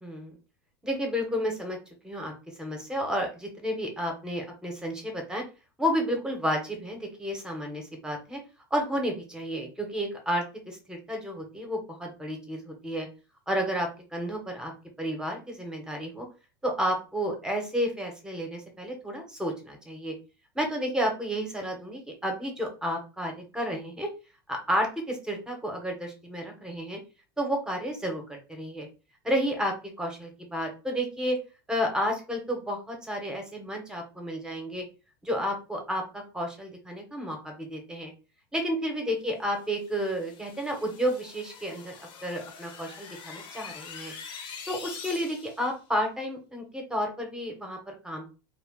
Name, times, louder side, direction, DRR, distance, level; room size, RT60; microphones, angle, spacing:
voice 1, 0.0-0.3 0.8-1.8 2.0-2.3 2.6-5.4 5.8-8.4 8.7-13.1 13.5-14.7 15.0-16.3 16.6-20.1 20.5-24.1 24.5-27.0 27.4-28.9 29.2-31.4 31.7-34.8 35.2-38.1 38.5-44.1 44.7-48.3, equal, 5° right, 2 dB, 0.9 m, -31 dB
sound 1, 39.7-45.7, left 6 dB, 45° left, 0.8 m, -44 dB
2.4 x 2.2 x 3.6 m, 0.32 s
supercardioid pair, 130°, 12 cm